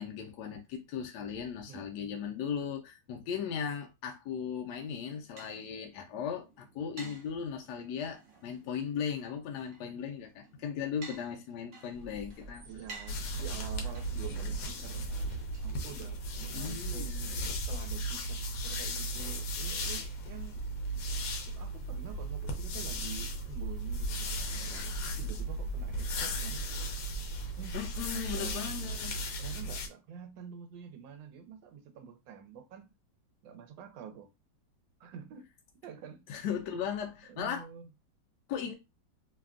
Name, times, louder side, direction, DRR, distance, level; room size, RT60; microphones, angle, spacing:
voice 1, 0.0-12.6 16.5-17.3 27.7-29.2 36.3-37.6 38.5-38.7, left 7 dB, 70° left, 1.1 m, -37 dB
sound 1, 4.8-16.4, right 3 dB, 65° right, 0.6 m, -54 dB
sound 2, 11.9-28.5, right 1 dB, 40° right, 0.9 m, -45 dB
voice 2, 12.6-17.1 17.7-20.6 21.3-26.6 27.6-28.7 29.4-32.9 33.4-34.3 35.0-35.5 35.8-36.2 37.3-37.9, right 8 dB, 85° right, 1.3 m, -48 dB
sound 3, 13.1-29.9, right 1 dB, 90° left, 1.3 m, -36 dB
3.3 x 2.2 x 2.4 m
omnidirectional pair, 2.0 m